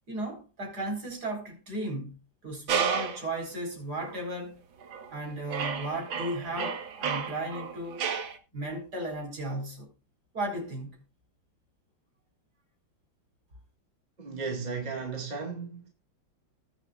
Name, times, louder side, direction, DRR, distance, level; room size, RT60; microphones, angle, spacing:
voice 1, 0.1-2.2 2.4-4.6 5.1-8.0 8.5-9.9 10.3-11.0, right 1 dB, 50° right, 5.3 m, -35 dB
sound 1, 2.7-3.3 4.0-4.2 4.8-5.2 5.5-8.4, right 6 dB, 80° right, 2.2 m, -32 dB
voice 2, 14.2-15.9, right 5 dB, 20° right, 2.1 m, -35 dB
19.5 x 7.3 x 2.4 m
omnidirectional pair, 2.1 m